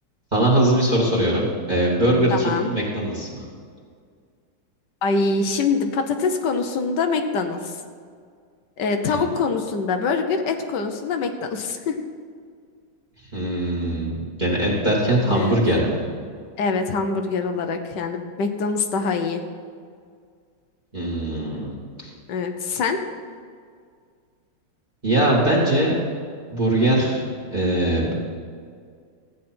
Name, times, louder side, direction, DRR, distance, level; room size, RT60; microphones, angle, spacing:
voice 1, 0.3-3.4 9.1-9.2 13.3-16.0 20.9-21.8 22.0-22.1 25.0-26.0 26.5-27.3 27.5-28.1, right 1 dB, 25° right, -4 dB, 2.0 m, -21 dB
voice 2, 2.3-2.7 5.0-7.8 8.8-12.0 15.2-15.6 16.6-19.4 22.3-23.1, left 4 dB, 70° left, 6 dB, 1.4 m, -24 dB
14.5 x 9.1 x 4.3 m, 2.1 s
omnidirectional pair, 2.0 m